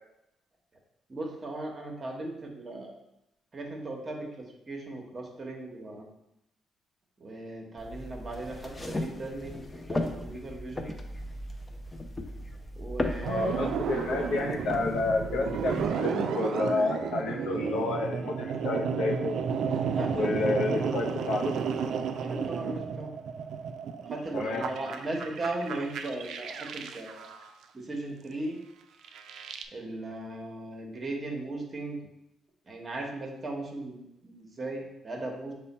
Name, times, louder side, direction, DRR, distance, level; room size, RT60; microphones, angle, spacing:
voice 1, 1.1-2.9 3.5-6.0 7.2-9.6 9.9-10.9 12.7-14.0 14.3-14.4 19.9-20.5 21.0-21.1 22.2-23.1 24.1-27.3 27.7-28.6 29.7-32.0 32.7-35.5, right 2 dB, 35° right, 1 dB, 1.0 m, -37 dB
sound 1, 7.8-15.9, left 1 dB, 20° left, 0.5 m, -37 dB
sound 2, 13.2-27.5 29.0-29.7, right 6 dB, 70° right, 0.3 m, -32 dB
voice 2, 13.3-19.4 20.1-21.5 24.3-24.6, left 3 dB, 80° left, 3 dB, 0.6 m, -30 dB
5.4 x 2.2 x 4.1 m, 0.86 s
cardioid pair, 90°, 0 cm